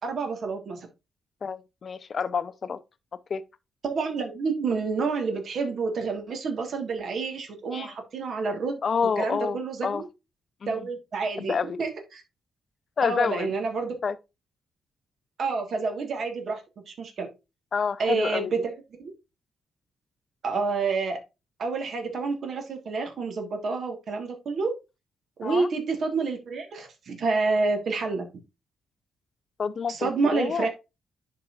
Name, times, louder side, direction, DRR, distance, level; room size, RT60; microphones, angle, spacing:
voice 1, 0.0-0.9 3.8-8.8 9.2-10.1 10.7-12.2 13.0-13.9 15.4-17.3 18.0-19.1 20.4-21.2 21.6-24.7 25.4-28.3 29.9-30.7, right 4 dB, 65° right, 1.5 m, -29 dB
voice 2, 1.4-2.8 3.3-3.4 7.7-7.9 8.8-10.0 10.6-10.9 11.4-11.8 13.0-13.5 14.0-14.2 17.7-18.6 25.4-25.7 29.6-30.7, left 6 dB, 50° left, 0.6 m, -28 dB
10.5 x 3.9 x 2.5 m
cardioid pair, 70°, 0 cm